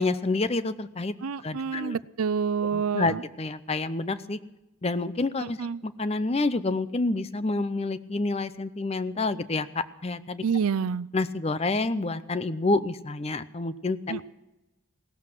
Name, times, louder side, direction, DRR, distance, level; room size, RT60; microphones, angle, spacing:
voice 1, 0.0-1.1 1.4-2.0 2.7-4.4 4.8-10.4 11.1-14.2, left 3 dB, 30° left, 14 dB, 0.6 m, -28 dB
voice 2, 1.2-3.2 5.4-5.8 10.4-11.1 14.1-14.2, right 6 dB, 85° right, 19 dB, 0.5 m, -28 dB
17.5 x 13.5 x 6.0 m, 0.99 s
head